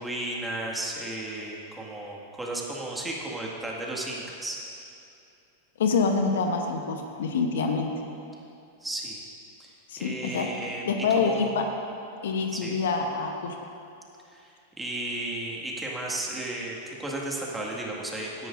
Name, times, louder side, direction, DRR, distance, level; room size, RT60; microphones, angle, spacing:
voice 1, 0.0-4.6 8.8-9.2 9.6-11.6 12.5-12.8 14.3-18.5, right 1 dB, 10° right, -3 dB, 2.0 m, -34 dB
voice 2, 5.8-7.9 9.9-10.5 10.8-11.7 12.2-13.5, left 4 dB, 70° left, 4 dB, 1.0 m, -26 dB
17.5 x 10.5 x 2.6 m, 2.6 s
hypercardioid pair, 100°, 0 cm